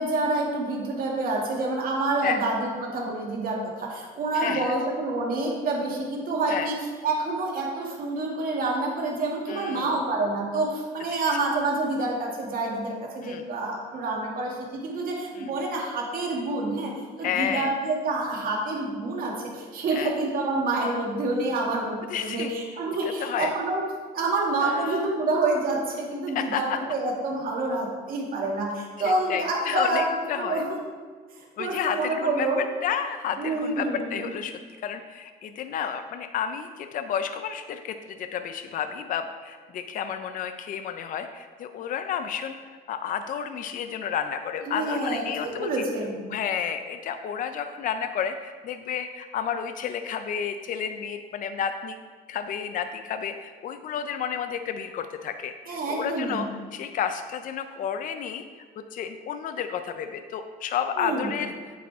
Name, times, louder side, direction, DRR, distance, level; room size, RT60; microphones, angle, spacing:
voice 1, 0.0-6.8 7.0-16.9 17.2-23.8 24.1-30.6 31.3-32.6 33.4-34.3 44.7-46.3 55.7-56.6 61.0-61.3, right 2 dB, 60° right, -2 dB, 2.4 m, -28 dB
voice 2, 4.3-4.7 6.5-6.7 9.5-9.9 13.2-13.4 15.4-15.5 17.2-17.7 19.9-20.1 22.1-22.5 23.2-23.5 24.6-25.1 26.3-26.8 29.0-30.6 31.6-32.5 32.8-33.9 34.1-34.5 34.8-42.6 42.9-45.8 46.3-52.0 52.3-56.5 56.7-58.4 58.9-61.5, left 8 dB, 55° left, 8 dB, 0.5 m, -31 dB
8.5 x 8.3 x 3.6 m, 1.5 s
cardioid pair, 110°, 17 cm